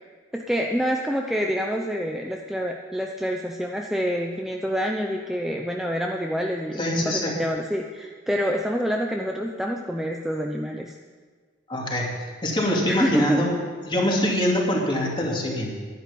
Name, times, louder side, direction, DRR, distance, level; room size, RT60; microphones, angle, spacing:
voice 1, 0.3-10.9 12.9-13.5, equal, ahead, 1 dB, 0.6 m, -27 dB
voice 2, 6.8-7.3 11.7-13.6 13.9-15.7, left 1 dB, 25° left, -1 dB, 2.5 m, -24 dB
11.0 x 11.0 x 7.0 m, 1.5 s
head